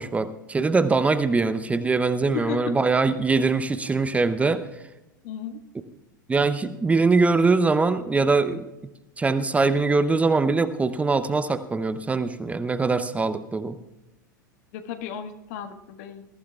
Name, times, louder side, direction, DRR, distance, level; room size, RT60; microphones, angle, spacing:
voice 1, 0.0-4.6 6.3-8.7 9.2-13.8, right 4 dB, 15° right, 12 dB, 0.7 m, -22 dB
voice 2, 2.3-2.8 5.2-5.6 14.7-16.3, left 9 dB, 55° left, 8 dB, 1.4 m, -34 dB
22.0 x 14.5 x 2.4 m, 0.98 s
figure-of-eight pair, 90°, 11 cm